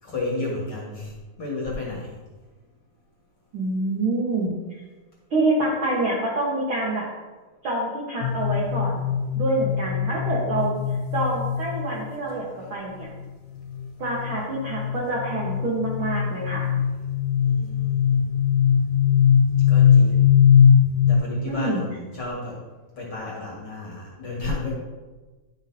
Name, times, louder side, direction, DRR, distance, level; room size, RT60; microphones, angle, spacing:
voice 1, 0.0-2.2 17.4-18.3 19.7-20.4 21.1-22.6 22.9-24.7, left 2 dB, 45° left, -4 dB, 2.0 m, -32 dB
voice 2, 3.5-4.5 5.3-7.1 7.6-9.0 9.3-10.8 11.1-12.4 12.7-13.1 14.0-16.7 21.5-21.8, right 2 dB, 65° right, -4 dB, 1.3 m, -26 dB
sound 1, 8.2-12.1 13.6-21.2, left 8 dB, 80° left, 1.6 m, -20 dB
11.0 x 6.7 x 2.8 m, 1.2 s
omnidirectional pair, 4.2 m